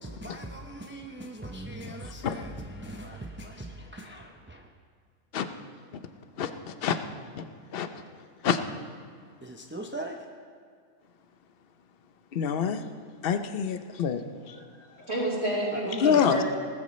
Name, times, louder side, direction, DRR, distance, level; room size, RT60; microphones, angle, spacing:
voice 1, 0.0-4.7 9.4-10.2 15.7-16.4, right 1 dB, 15° right, 1 dB, 0.4 m, -40 dB
voice 2, 6.4-7.0 7.4-7.5 7.7-7.9 8.4-8.6 12.3-12.8 13.2-14.2 14.5-14.6 16.0-16.4, left 7 dB, 50° left, 9 dB, 0.8 m, -26 dB
voice 3, 14.5-16.4, right 1 dB, 45° right, -6 dB, 5.0 m, -31 dB
19.0 x 13.5 x 3.2 m, 2.1 s
omnidirectional pair, 1.5 m